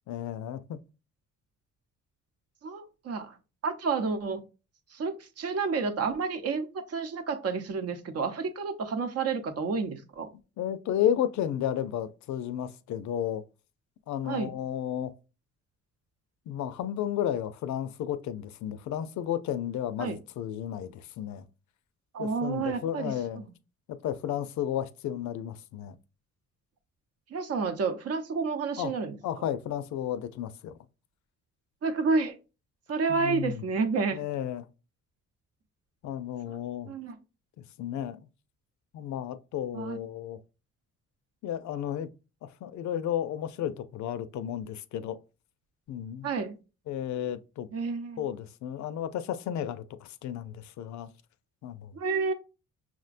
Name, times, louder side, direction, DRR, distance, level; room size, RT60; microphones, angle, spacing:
voice 1, 0.1-0.8 10.6-13.4 14.1-15.1 16.5-21.4 22.2-23.4 23.9-26.0 28.8-28.9 29.2-30.7 33.1-33.6 34.1-34.7 36.0-36.9 37.8-38.2 38.9-40.4 41.4-42.1 42.4-45.2 45.9-46.3 46.9-47.7 48.2-51.1 51.6-52.0, left 10 dB, 70° left, 0.5 m, -33 dB
voice 2, 2.6-3.4 3.6-4.4 4.9-10.3 14.2-14.5 20.0-20.2 22.1-23.5 27.3-29.2 31.8-32.3 32.9-34.2 36.9-37.2 39.7-40.0 46.2-46.6 47.7-48.3 51.9-52.3, right 4 dB, 55° right, 0.8 m, -30 dB
5.9 x 2.1 x 2.4 m
cardioid pair, 90°, 30 cm